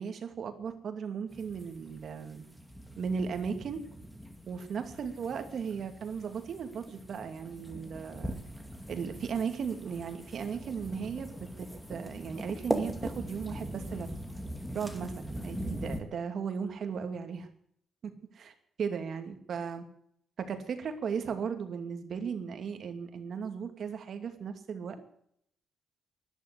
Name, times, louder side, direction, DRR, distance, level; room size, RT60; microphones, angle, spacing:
voice 1, 0.0-2.4 3.0-3.8 4.5-8.4 8.9-11.3 11.6-14.1 14.7-17.5 18.3-19.8 20.4-25.0, right 6 dB, 60° right, 7 dB, 2.5 m, -36 dB
sound 1, 1.3-16.0, equal, 5° left, 2.4 m, -41 dB
12.0 x 11.5 x 9.9 m, 0.68 s
cardioid pair, 100°, 0 cm